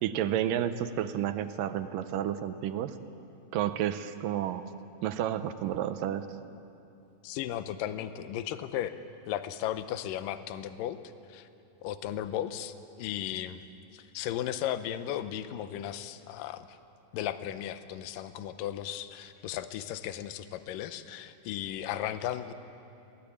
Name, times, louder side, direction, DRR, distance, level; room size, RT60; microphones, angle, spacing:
voice 1, 0.0-2.9 3.5-4.6 5.0-6.3, right 11 dB, 80° right, 11 dB, 2.3 m, -31 dB
voice 2, 7.2-8.9 9.3-11.0 11.3-11.5 11.8-13.6 13.9-16.8 17.1-22.5, left 11 dB, 80° left, 11 dB, 2.4 m, -35 dB
22.5 x 17.5 x 8.5 m, 2.8 s
omnidirectional pair, 4.1 m